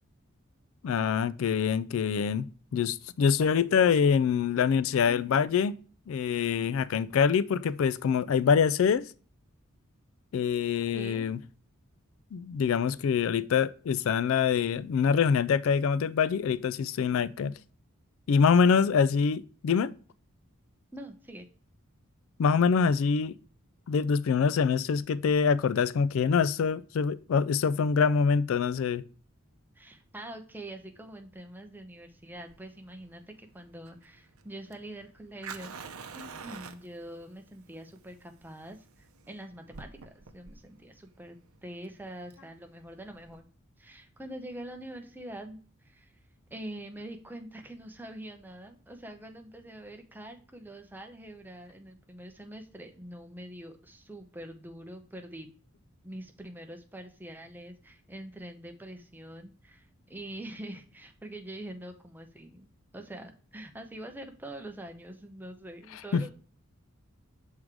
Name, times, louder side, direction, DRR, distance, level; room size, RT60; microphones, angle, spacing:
voice 1, 0.8-2.5 2.7-5.8 6.1-9.1 10.3-11.4 12.3-17.5 18.3-19.9 22.4-23.4 23.9-29.0 66.1-66.3, left 6 dB, 65° left, 0.3 m, -25 dB
voice 2, 10.9-11.3 20.9-21.5 29.7-35.8 36.1-41.4 41.6-43.5 43.8-46.2 46.5-55.5 56.0-62.7 62.9-66.3, right 1 dB, 10° right, 0.7 m, -44 dB
Fire, 32.3-43.4, right 5 dB, 80° right, 0.7 m, -48 dB
6.2 x 3.7 x 4.6 m
head